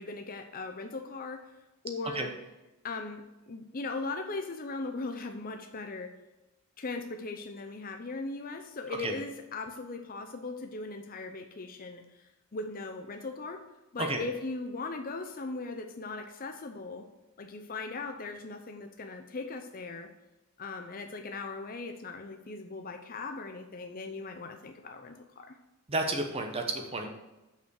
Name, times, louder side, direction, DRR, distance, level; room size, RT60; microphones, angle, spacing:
voice 1, 0.0-1.4 1.8-2.3 2.8-6.1 6.8-12.2 12.5-13.6 13.9-17.1 17.4-20.1 20.6-25.6, left 3 dB, 40° left, 5 dB, 0.6 m, -39 dB
voice 2, 25.9-27.1, right 2 dB, 25° right, 4 dB, 0.9 m, -31 dB
6.8 x 5.7 x 6.4 m, 1.1 s
head